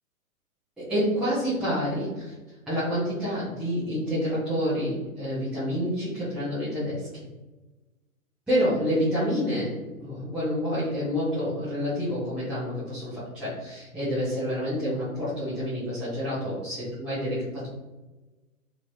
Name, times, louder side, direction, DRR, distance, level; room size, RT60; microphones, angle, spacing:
voice 1, 0.8-2.3 2.7-7.2 8.5-17.7, equal, ahead, -15 dB, 0.6 m, -28 dB
3.2 x 2.9 x 2.6 m, 1.2 s
hypercardioid pair, 130°, 42 cm